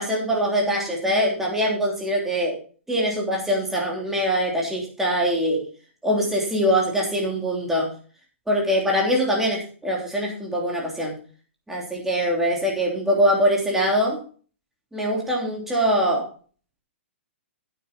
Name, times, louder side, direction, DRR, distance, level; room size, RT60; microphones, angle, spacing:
voice 1, 0.0-2.6 2.9-5.6 6.0-7.9 8.5-11.2 11.7-14.2 14.9-16.3, equal, 5° right, -3 dB, 3.1 m, -23 dB
9.3 x 9.1 x 4.2 m, 0.40 s
hypercardioid pair, 150°, 7 cm